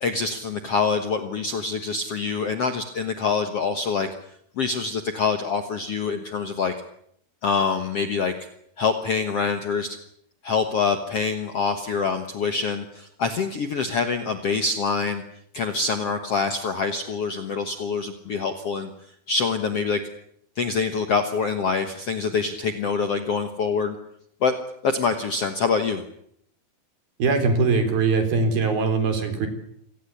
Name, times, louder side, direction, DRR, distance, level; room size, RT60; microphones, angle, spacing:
voice 1, 0.0-4.1 4.6-6.7 7.4-8.3 8.8-10.0 10.4-15.2 15.5-18.9 19.3-20.0 20.6-24.0 24.4-24.6 24.8-26.0, left 5 dB, 55° left, 7 dB, 1.7 m, -25 dB
voice 2, 27.2-29.5, right 4 dB, 65° right, 6 dB, 5.6 m, -21 dB
27.0 x 18.5 x 8.5 m, 0.70 s
omnidirectional pair, 4.5 m